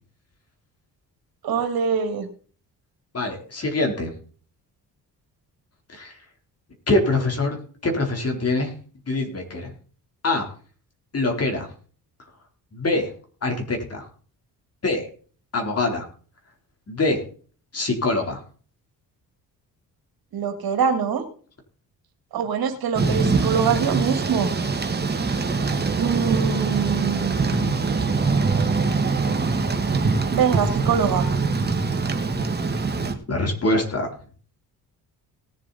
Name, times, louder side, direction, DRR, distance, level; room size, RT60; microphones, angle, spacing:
voice 1, 1.4-2.3 20.3-21.3 22.3-24.5 26.0-27.4 30.3-31.3, right 7 dB, 70° right, 7 dB, 2.1 m, -23 dB
voice 2, 3.1-4.1 5.9-6.1 6.9-7.6 7.8-8.7 9.1-9.7 10.2-10.5 11.1-11.7 12.7-13.1 13.4-14.1 14.8-15.0 15.5-16.1 16.9-17.2 17.7-18.4 27.5-27.7 33.3-34.1, left 2 dB, 40° left, 3 dB, 3.8 m, -24 dB
Thunder / Rain, 22.9-33.1, right 4 dB, 25° right, 1.7 m, -23 dB
18.5 x 7.4 x 4.2 m, 0.43 s
cardioid pair, 90°, 38 cm